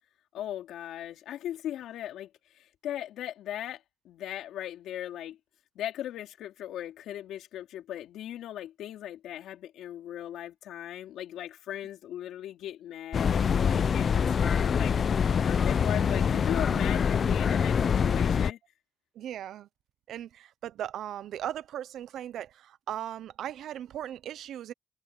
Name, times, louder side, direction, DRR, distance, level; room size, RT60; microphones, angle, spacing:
voice 1, 0.3-5.4 5.8-18.6, left 11 dB, 80° left, 3.6 m, -38 dB
sound 1, 13.1-18.5, left 7 dB, 50° left, 0.8 m, -25 dB
voice 2, 19.1-19.7 20.1-24.7, right 11 dB, 75° right, 0.8 m, -38 dB
cardioid pair, 90°, 0 cm